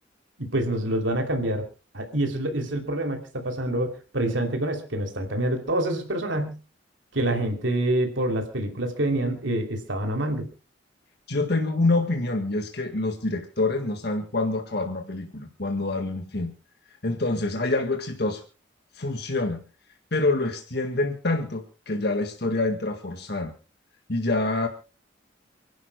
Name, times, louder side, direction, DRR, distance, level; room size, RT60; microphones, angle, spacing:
voice 1, 0.4-1.6 1.9-6.6 7.1-10.5, right 1 dB, 90° right, 3 dB, 3.0 m, -26 dB
voice 2, 11.3-16.5 17.0-18.4 18.9-19.6 20.1-23.5 24.1-24.7, left 2 dB, 60° left, 5 dB, 1.7 m, -26 dB
29.0 x 11.5 x 2.2 m, 0.34 s
head